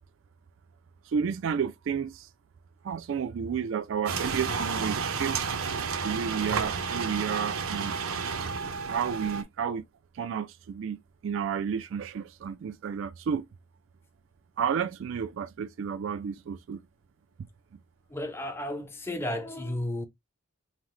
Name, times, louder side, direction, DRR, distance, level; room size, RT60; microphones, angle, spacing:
voice 1, 1.0-2.3 2.8-5.6 6.0-7.9 8.9-9.8 10.1-11.0 11.2-13.4 14.6-16.8, right 7 dB, 60° right, 0.3 m, -31 dB
sound 1, 4.1-9.4, right 5 dB, 85° right, 0.7 m, -31 dB
voice 2, 18.1-20.1, left 1 dB, 10° left, 0.6 m, -33 dB
5.5 x 2.1 x 3.0 m
head